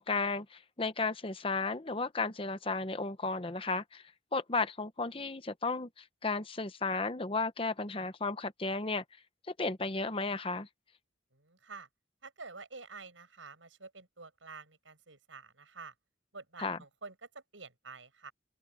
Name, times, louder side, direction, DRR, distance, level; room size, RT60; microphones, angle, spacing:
voice 1, 0.0-4.0 4.3-5.9 6.2-9.0 9.6-10.7 16.6-16.8, left 3 dB, 30° left, 0.8 m, -34 dB
voice 2, 11.3-11.9 12.2-15.9 16.3-18.3, right 4 dB, 85° right, 7.3 m, -49 dB
head